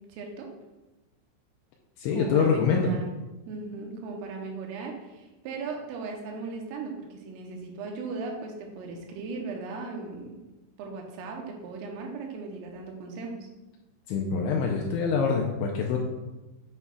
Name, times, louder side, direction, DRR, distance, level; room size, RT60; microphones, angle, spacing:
voice 1, 0.1-0.5 2.1-3.1 3.5-10.4 10.8-13.5, right 4 dB, 85° right, 1 dB, 3.5 m, -37 dB
voice 2, 2.0-2.9 14.1-16.0, left 5 dB, 85° left, 0 dB, 2.7 m, -25 dB
8.2 x 7.7 x 2.3 m, 1.1 s
omnidirectional pair, 5.8 m